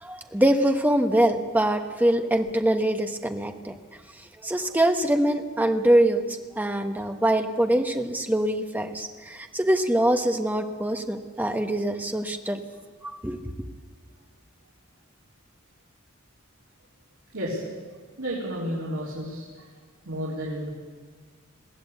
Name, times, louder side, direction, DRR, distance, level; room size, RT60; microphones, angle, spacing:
voice 1, 0.0-3.8 4.4-12.6 13.0-13.4, right 1 dB, 10° right, 5 dB, 1.2 m, -24 dB
voice 2, 18.2-19.7 20.0-20.7, equal, 80° right, -6 dB, 4.3 m, -31 dB
22.0 x 16.0 x 8.4 m, 1.5 s
head